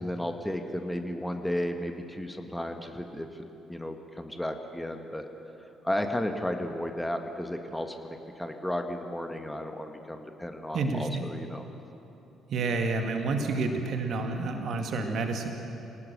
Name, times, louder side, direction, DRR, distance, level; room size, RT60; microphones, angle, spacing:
voice 1, 0.0-5.3 5.8-11.6, left 1 dB, 5° left, 5 dB, 1.8 m, -34 dB
voice 2, 10.7-11.3 12.5-15.5, right 3 dB, 50° right, 4 dB, 2.1 m, -29 dB
26.5 x 18.5 x 6.8 m, 3.0 s
figure-of-eight pair, 45°, 0 cm